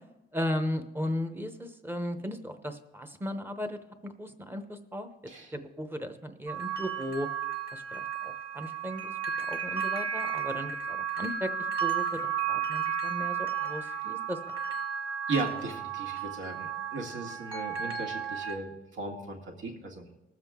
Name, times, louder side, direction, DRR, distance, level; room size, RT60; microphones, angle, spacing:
voice 1, 0.3-5.1 5.5-7.3 7.7-11.5 11.8-14.4, equal, 10° right, 7 dB, 0.7 m, -36 dB
sound 1, 6.5-18.6, right 7 dB, 25° right, 1.7 m, -33 dB
voice 2, 15.3-20.1, right 3 dB, 80° right, 2 dB, 1.9 m, -36 dB
20.0 x 7.4 x 3.6 m, 0.94 s
cardioid pair, 160°, 20 cm